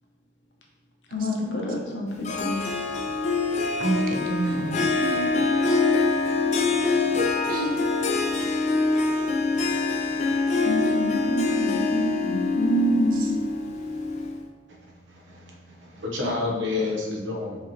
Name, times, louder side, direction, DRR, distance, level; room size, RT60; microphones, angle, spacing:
voice 1, 1.1-2.7 10.6-13.3, equal, 70° left, -1 dB, 0.8 m, -27 dB
Harp, 2.2-14.4, left 3 dB, 40° left, 0.4 m, -24 dB
voice 2, 3.8-5.5 7.1-7.8 16.2-16.3, right 2 dB, 50° right, 3 dB, 0.5 m, -29 dB
voice 3, 15.1-17.6, left 3 dB, 80° right, -1 dB, 0.8 m, -29 dB
4.8 x 3.0 x 2.8 m, 1.3 s
head